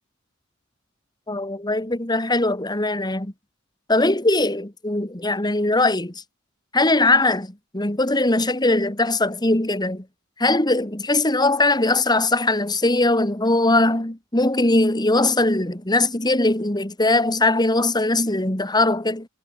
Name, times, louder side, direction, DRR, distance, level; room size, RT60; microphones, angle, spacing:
voice 1, 1.3-3.3 3.9-6.1 6.7-10.0 10.4-19.3, left 2 dB, 20° left, 2.6 m, -20 dB
head